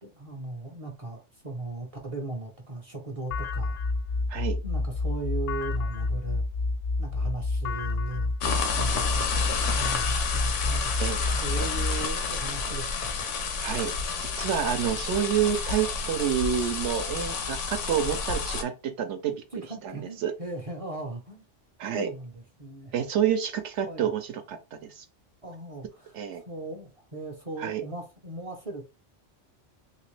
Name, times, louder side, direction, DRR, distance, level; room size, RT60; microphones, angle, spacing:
voice 1, 0.0-3.8 4.6-6.4 7.0-9.3 9.8-10.9 11.3-13.3 19.5-21.4 21.9-22.9 23.9-24.1 25.4-26.1 26.5-28.8, right 2 dB, 40° right, 0.5 m, -38 dB
sound 1, 3.3-12.0, left 3 dB, 60° left, 0.6 m, -29 dB
sound 2, 8.4-18.6, left 5 dB, 80° left, 1.0 m, -30 dB
voice 2, 13.6-19.4 19.8-19.9 20.2-20.3 21.8-22.1 22.9-25.0 26.1-26.4 27.6-27.8, right 9 dB, 75° right, 0.9 m, -28 dB
3.1 x 2.9 x 3.1 m
omnidirectional pair, 1.2 m